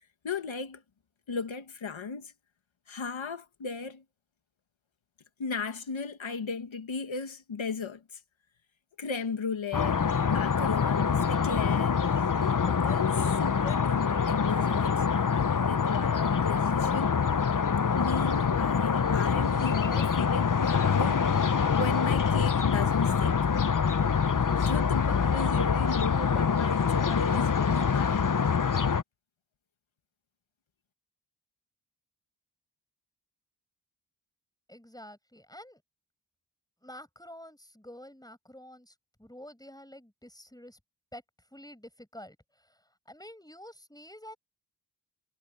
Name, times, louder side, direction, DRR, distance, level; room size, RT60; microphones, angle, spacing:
voice 1, 0.2-0.8 1.3-2.3 2.9-4.0 5.4-8.2 9.0-12.0 12.4-17.2 17.9-21.3 21.7-23.5 24.5-28.3, left 5 dB, 90° left, 1.6 m, -35 dB
sound 1, 9.7-29.0, left 6 dB, 45° left, 0.9 m, -25 dB
voice 2, 34.7-35.8 36.8-38.9 39.2-40.8 41.1-41.2 41.5-42.8 43.1-44.4, left 1 dB, 10° left, 6.5 m, -48 dB
wide cardioid pair, 55°, 45 cm